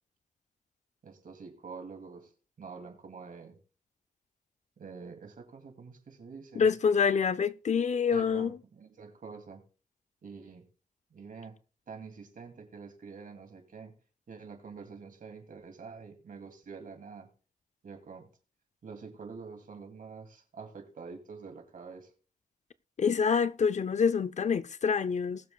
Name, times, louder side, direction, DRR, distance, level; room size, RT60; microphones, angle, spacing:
voice 1, 1.0-2.3 2.6-3.6 4.8-6.6 8.1-9.6 10.2-10.6 11.1-11.6 11.9-13.9 14.3-17.3 17.8-18.3 18.8-22.1, right 5 dB, 70° right, 2.5 m, -46 dB
voice 2, 6.6-8.5 23.0-25.4, left 6 dB, 55° left, 0.5 m, -26 dB
20.0 x 7.1 x 2.3 m
cardioid pair, 60°, 15 cm